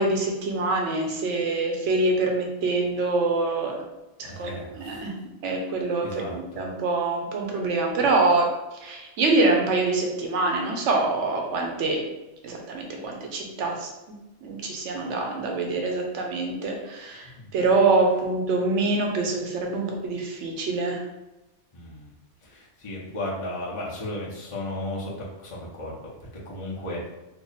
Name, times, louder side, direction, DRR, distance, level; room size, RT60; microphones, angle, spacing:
voice 1, 0.0-3.7 4.2-5.1 5.4-8.5 8.8-12.0 12.4-13.9 14.4-21.0, right 3 dB, 80° right, 1 dB, 1.0 m, -25 dB
voice 2, 4.2-5.0 6.0-6.6 17.2-17.5 21.7-22.1 22.4-27.1, left 1 dB, 35° left, -5 dB, 0.6 m, -35 dB
3.4 x 2.0 x 3.9 m, 1.0 s
omnidirectional pair, 1.2 m